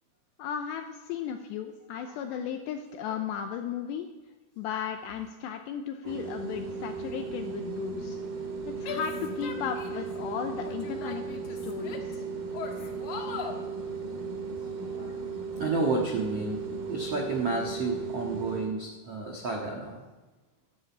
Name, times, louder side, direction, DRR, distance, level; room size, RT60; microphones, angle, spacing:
voice 1, 0.4-4.1 4.6-8.2 8.7-12.3, left 8 dB, 85° left, 5 dB, 2.6 m, -35 dB
voice 2, 2.0-2.5 6.1-6.2 12.7-12.9 13.3-13.9 14.5-14.6 14.8-15.2 15.6-20.0, right 3 dB, 75° right, 0 dB, 1.4 m, -32 dB
sound 1, 6.0-18.7, right 4 dB, 55° right, 3.3 m, -36 dB
Female speech woman speaking / Yell, 8.8-10.1 10.6-12.2 12.5-13.6, left 6 dB, 60° left, 2.1 m, -39 dB
13.0 x 10.5 x 8.7 m, 1.2 s
omnidirectional pair, 5.8 m